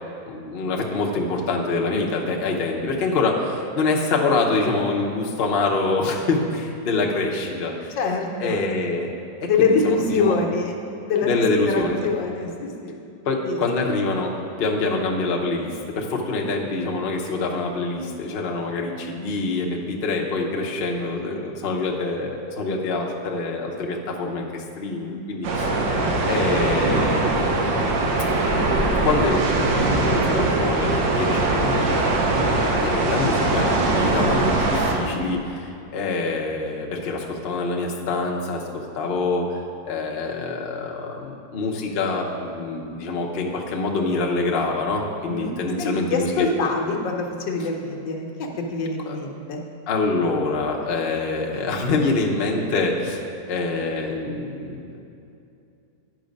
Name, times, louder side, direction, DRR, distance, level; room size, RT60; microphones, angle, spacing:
voice 1, 0.3-7.9 8.4-9.1 9.4-10.4 11.2-12.1 13.2-26.0 26.2-27.5 29.0-31.7 32.8-39.6 39.9-46.5 49.0-49.2 49.9-55.0, left 3 dB, 45° left, 0 dB, 0.7 m, -25 dB
voice 2, 8.0-8.6 9.4-10.7 11.0-13.0 13.4-13.6 25.0-25.4 31.7-32.1 45.2-45.5 45.8-49.6, left 4 dB, 80° left, 1 dB, 1.6 m, -25 dB
sound 1, 25.4-34.9, right 2 dB, 85° right, 1.6 m, -21 dB
9.3 x 5.8 x 5.2 m, 2.6 s
omnidirectional pair, 2.0 m